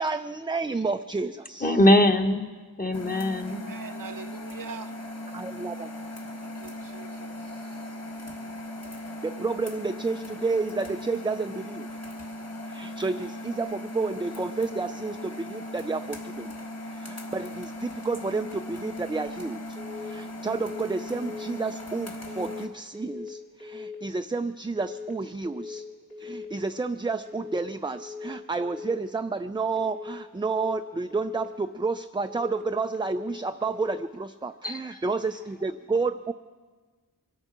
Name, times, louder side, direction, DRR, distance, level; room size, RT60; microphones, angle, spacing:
voice 1, 0.0-1.8 5.3-5.9 9.2-11.9 12.7-16.5 16.9-19.6 20.0-25.8 26.2-36.3, right 3 dB, 15° right, 8 dB, 0.3 m, -30 dB
voice 2, 1.6-2.4 2.8-3.6 34.6-34.8, left 1 dB, 25° left, 5 dB, 1.2 m, -21 dB
sound 1, 2.9-22.7, left 1 dB, 45° left, 1.7 m, -38 dB
voice 3, 3.5-4.9 6.6-7.3, right 6 dB, 60° right, 9 dB, 0.7 m, -42 dB
sound 2, 19.8-20.2 20.4-20.8 21.1-21.5 22.3-22.7 22.9-23.3 23.6-24.0 24.8-25.2 25.4-25.8 26.1-26.5 27.3-27.7 27.9-28.3 28.6-29.0 29.8-30.2 30.4-30.8 31.1-31.5 32.3-32.7 32.9-33.3 33.6-34.0, left 5 dB, 80° left, 4.3 m, -40 dB
23.5 x 9.0 x 5.9 m, 1.4 s
wide cardioid pair, 60°, 36 cm